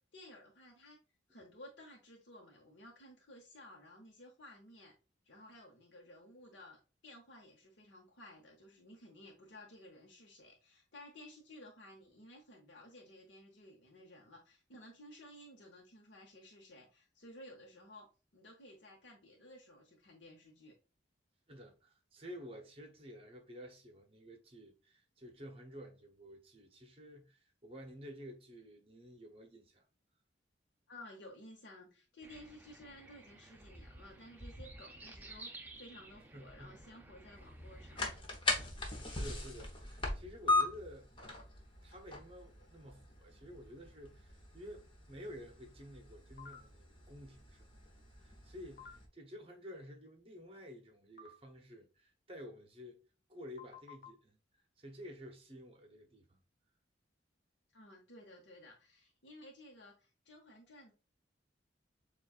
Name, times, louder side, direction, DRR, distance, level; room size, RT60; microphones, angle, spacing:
voice 1, 0.1-1.0 1.3-4.9 5.2-6.8 7.0-18.1 18.3-20.7 30.9-38.0 57.7-60.9, left 1 dB, 75° left, 0.9 m, -55 dB
voice 2, 21.5-29.8 36.3-37.0 39.0-47.7 48.1-53.0 53.3-54.4 54.8-56.4, equal, 30° right, 0.9 m, -52 dB
sound 1, 32.2-38.2, right 2 dB, 10° right, 0.5 m, -53 dB
sound 2, 37.3-49.1, left 2 dB, 25° left, 0.9 m, -40 dB
sound 3, 46.4-46.6 48.8-48.9 51.2-51.3 53.6-54.1, left 6 dB, 55° left, 0.7 m, -51 dB
7.1 x 2.4 x 2.4 m
head